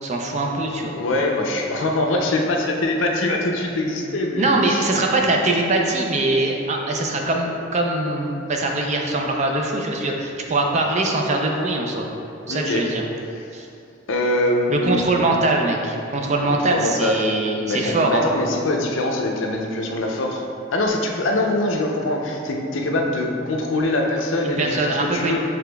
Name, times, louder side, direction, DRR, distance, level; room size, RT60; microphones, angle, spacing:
voice 1, 0.0-0.9 4.4-12.1 12.5-13.0 13.5-13.7 14.7-18.2 24.4-25.4, right 2 dB, 35° right, 1 dB, 0.4 m, -22 dB
voice 2, 0.9-4.9 12.5-12.9 13.4-13.5 14.1-15.1 16.7-17.2 17.7-20.4 20.7-25.4, left 1 dB, 80° left, 1 dB, 0.5 m, -23 dB
6.8 x 3.4 x 2.3 m, 2.6 s
head